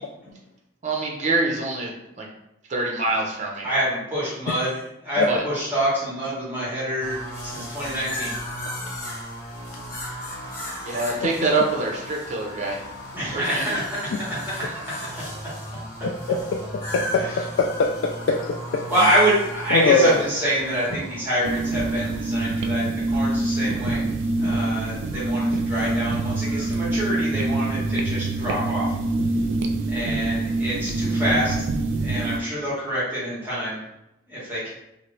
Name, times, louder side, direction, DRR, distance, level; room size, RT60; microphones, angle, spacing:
voice 1, 0.8-2.3 2.7-3.7 5.3-5.4 10.8-12.8 13.3-13.8 14.5-14.8, right 3 dB, 40° right, -1 dB, 0.6 m, -25 dB
voice 2, 3.6-4.7 5.0-7.2 7.4-8.3 13.1-13.8 17.2-17.3 18.9-24.0 24.4-28.9 29.9-31.7 32.0-33.8 34.3-34.7, right 1 dB, 10° right, -8 dB, 1.3 m, -26 dB
sound 1, 7.0-26.8, equal, 55° left, 1.1 m, -36 dB
voice 3, 16.0-16.4 16.9-17.2 17.6-18.1 18.5-19.1 19.7-20.2, left 3 dB, 85° left, 1 dB, 0.3 m, -21 dB
sound 2, 21.4-32.4, right 2 dB, 75° right, 0.4 m, -25 dB
2.8 x 2.5 x 3.1 m, 0.87 s
head